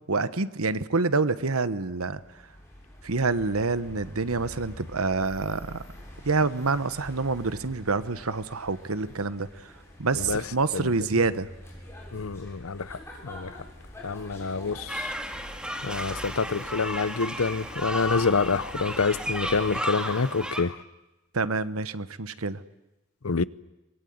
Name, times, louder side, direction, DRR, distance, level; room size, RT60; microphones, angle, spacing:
voice 1, 0.1-2.2 3.0-5.8 6.2-9.7 10.0-11.5 21.3-22.6, right 3 dB, 90° right, 1.2 m, -27 dB
sound 1, 1.8-19.8, left 1 dB, 10° left, 7.6 m, -46 dB
voice 2, 12.1-13.6 14.0-15.1 15.8-20.8 23.2-23.4, left 4 dB, 80° left, 0.8 m, -27 dB
sound 2, 14.9-20.6, right 1 dB, 5° right, 2.0 m, -33 dB
24.0 x 21.5 x 9.5 m
head